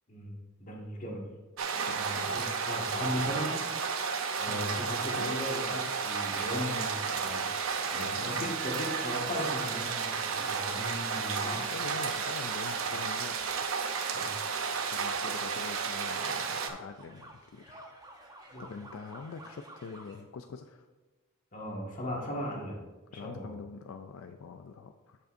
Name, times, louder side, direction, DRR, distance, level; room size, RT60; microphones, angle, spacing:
voice 1, 0.1-1.2 1.9-3.5 4.4-7.4 7.9-11.6 14.1-14.3 18.5-18.6 21.5-22.8 23.1-23.5, equal, 40° left, -1 dB, 1.7 m, -37 dB
sound 1, 1.6-16.7, right 5 dB, 85° right, 0.7 m, -32 dB
voice 2, 1.9-2.4 4.5-4.8 5.2-5.4 7.9-8.5 11.1-13.4 14.9-17.8 18.6-20.9 23.1-25.2, left 5 dB, 80° left, 7 dB, 0.4 m, -44 dB
sound 2, 4.8-20.2, right 1 dB, 20° right, 0.9 m, -51 dB
Wind instrument woodwind instrument, 8.6-10.6, right 7 dB, ahead, 1.9 m, -48 dB
13.5 x 5.3 x 2.6 m, 1.2 s
head